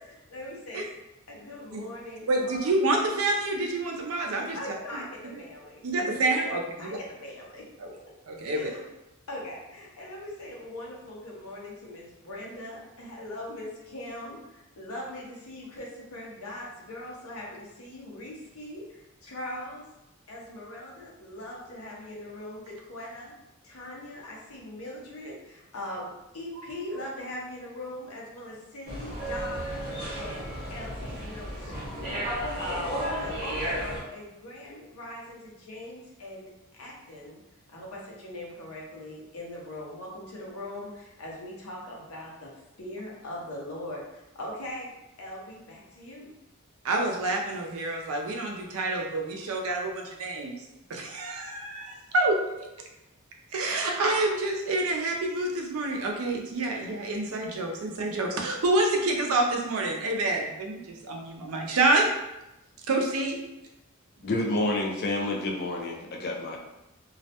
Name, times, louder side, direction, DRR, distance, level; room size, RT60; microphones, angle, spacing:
voice 1, 0.1-0.8 1.3-2.6 4.5-6.3 6.8-7.6 8.5-8.8 9.3-19.9 20.3-23.3 23.6-36.5 36.8-37.4 37.7-42.5 42.8-44.9 45.2-46.3, left 1 dB, 90° left, -3 dB, 0.7 m, -41 dB
voice 2, 2.3-4.6 4.9-5.0 5.8-7.0 7.8-7.9 8.3-8.7 26.6-26.7 46.8-52.7 53.5-62.1 62.8-63.4, right 2 dB, 85° right, 1 dB, 0.5 m, -28 dB
sound 1, 28.9-34.0, right 1 dB, 40° right, 0.9 m, -33 dB
voice 3, 64.2-66.6, left 2 dB, 50° left, 1 dB, 0.4 m, -29 dB
2.3 x 2.1 x 2.7 m, 0.93 s
head